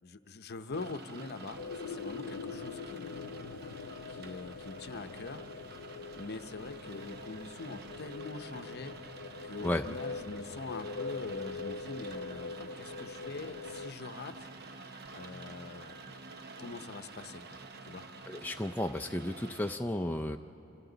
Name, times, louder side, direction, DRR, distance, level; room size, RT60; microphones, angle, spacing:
voice 1, 0.0-3.5 4.1-5.4 6.2-9.0 9.4-14.3 15.1-18.0, left 3 dB, 55° left, 9 dB, 0.8 m, -44 dB
Rain, 0.7-19.7, right 3 dB, 55° right, 0.9 m, -49 dB
sound 1, 1.6-13.9, left 4 dB, 90° left, 0.5 m, -43 dB
voice 2, 18.3-20.4, left 1 dB, 10° left, 4 dB, 0.4 m, -33 dB
27.5 x 27.5 x 4.0 m, 2.9 s
head